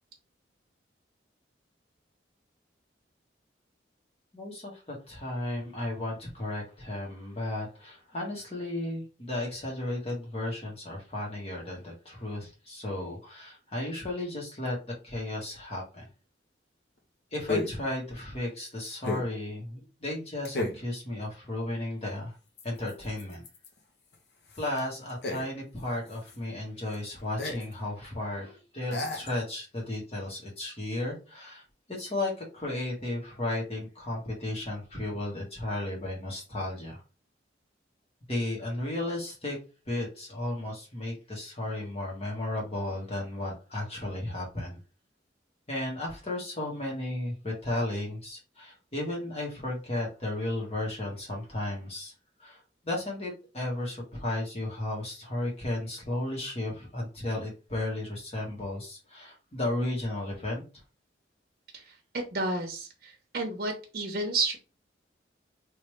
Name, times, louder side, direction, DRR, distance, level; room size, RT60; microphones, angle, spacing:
voice 1, 4.3-16.1 17.3-22.4 22.6-23.4 24.6-31.6 31.9-37.0 38.3-39.6 39.9-44.8 45.7-52.1 52.4-60.6, left 1 dB, 35° left, -2 dB, 1.7 m, -34 dB
sound 1, 14.7-14.8 17.5-17.9 19.0-19.4 20.5-20.9 22.6-23.8 24.1-24.2 24.4-25.8 26.1-26.4 26.9-27.0 27.4-27.7 28.0-28.1 28.9-29.4, left 2 dB, 65° left, 0.9 m, -33 dB
voice 2, 61.7-64.6, right 2 dB, 50° right, 1 dB, 0.9 m, -32 dB
3.2 x 3.2 x 3.1 m, 0.32 s
head